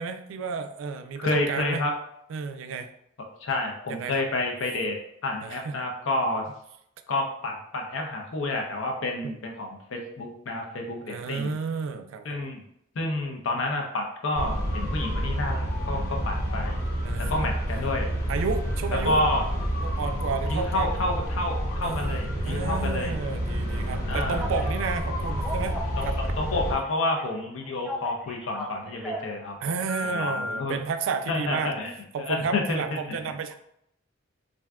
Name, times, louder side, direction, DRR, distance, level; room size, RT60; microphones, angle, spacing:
voice 1, 0.0-1.8 2.3-2.9 3.9-4.2 5.4-5.8 9.2-9.3 11.0-12.4 17.0-17.5 18.3-19.2 19.8-20.9 21.8-25.8 29.6-31.7 32.1-33.6, right 5 dB, 85° right, 8 dB, 0.3 m, -32 dB
voice 2, 1.2-1.9 3.4-5.0 5.2-6.4 7.1-11.5 12.3-12.6 13.0-16.8 17.2-18.1 19.0-19.4 20.5-23.1 24.1-24.4 26.0-29.7 30.1-30.8 31.3-31.9 32.2-32.8 33.1-33.2, left 2 dB, 85° left, 2 dB, 0.5 m, -29 dB
sound 1, 14.3-26.7, equal, 45° left, 0.8 m, -29 dB
Telephone, 24.4-24.7 25.2-26.9 27.1-29.3 29.9-30.6, left 1 dB, 5° right, 0.3 m, -36 dB
3.4 x 2.5 x 2.3 m, 0.75 s
head